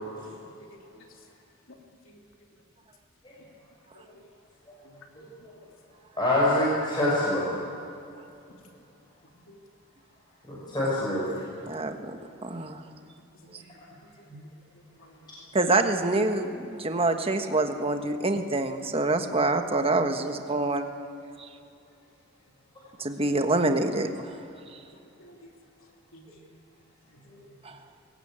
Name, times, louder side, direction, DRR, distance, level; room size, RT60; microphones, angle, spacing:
voice 1, 4.8-5.3 9.5-9.6 13.4-13.7 14.2-14.3 15.0-15.3 25.2-25.5 26.1-26.3 27.1-27.2, left 1 dB, 70° left, 1 dB, 3.2 m, -53 dB
voice 2, 6.2-7.5 10.5-11.2 14.3-14.4, left 1 dB, 20° left, -7 dB, 5.8 m, -25 dB
voice 3, 11.7-12.8 15.5-20.9 23.0-24.4 27.6-27.8, right 2 dB, 25° right, 6 dB, 1.4 m, -26 dB
21.5 x 18.5 x 8.8 m, 2.6 s
head